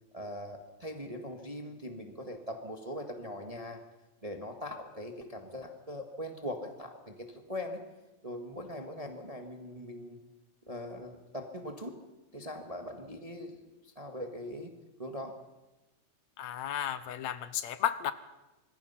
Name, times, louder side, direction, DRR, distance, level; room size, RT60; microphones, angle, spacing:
voice 1, 0.1-3.8 4.2-7.8 8.2-10.2 10.7-12.0 12.3-14.7 15.0-15.4, left 1 dB, 20° right, 4 dB, 1.2 m, -41 dB
voice 2, 16.4-18.1, left 10 dB, 75° left, 13 dB, 2.1 m, -33 dB
26.0 x 21.0 x 5.8 m, 1.1 s
omnidirectional pair, 3.3 m